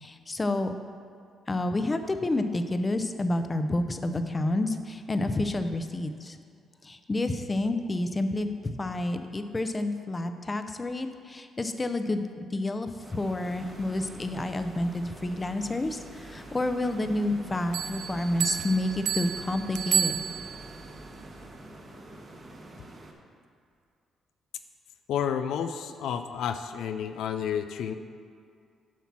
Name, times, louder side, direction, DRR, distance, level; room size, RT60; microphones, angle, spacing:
voice 1, 0.0-0.7 1.5-6.4 6.8-20.2, left 2 dB, 25° left, 8 dB, 0.6 m, -29 dB
sound 1, 13.0-23.1, right 1 dB, 40° right, 1.2 m, -47 dB
sound 2, 13.5-21.6, right 2 dB, 5° right, 1.3 m, -51 dB
sound 3, 17.7-20.8, right 8 dB, 75° right, 0.4 m, -30 dB
voice 2, 25.1-27.9, left 8 dB, 80° left, 8 dB, 0.3 m, -30 dB
7.2 x 5.8 x 6.0 m, 2.3 s
cardioid pair, 90°, 0 cm